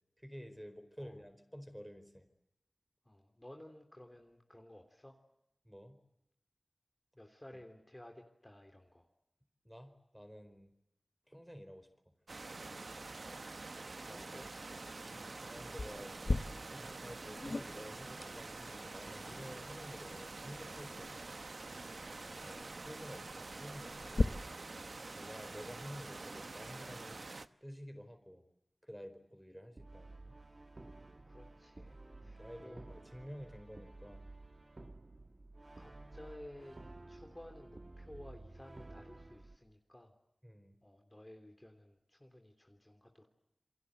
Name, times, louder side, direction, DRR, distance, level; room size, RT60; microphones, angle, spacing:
voice 1, 0.2-2.3 5.6-6.0 9.6-10.7 11.3-12.1 14.0-14.3 15.1-16.2 16.5-21.2 22.4-24.3 25.2-27.3 27.6-28.4 28.8-30.3 32.2-34.3 40.4-40.8, equal, ahead, 9 dB, 4.5 m, -51 dB
voice 2, 3.0-5.2 7.1-9.1 14.0-14.5 31.3-32.8 35.8-36.8 37.1-40.1 40.8-43.3, left 1 dB, 20° left, 4 dB, 3.2 m, -55 dB
sound 1, 12.3-27.5, right 3 dB, 75° right, 1.0 m, -47 dB
sound 2, 15.8-24.2, left 3 dB, 70° left, 1.3 m, -41 dB
Brass instrument, 29.8-39.6, right 2 dB, 50° right, 1.6 m, -53 dB
28.5 x 23.5 x 8.0 m, 0.86 s
wide cardioid pair, 55°, 0 cm